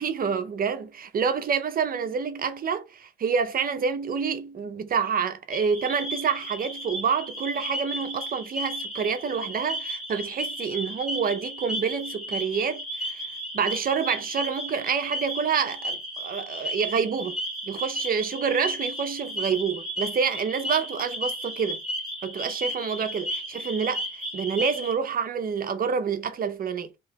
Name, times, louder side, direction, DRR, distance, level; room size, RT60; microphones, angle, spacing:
voice 1, 0.0-13.2 13.5-17.4 17.7-21.8 22.2-24.0 24.3-26.9, right 6 dB, 45° right, 0.7 m, -28 dB
sound 1, 5.5-24.9, equal, ahead, 2.0 m, -34 dB
3.1 x 2.9 x 3.5 m
cardioid pair, 90°, 20 cm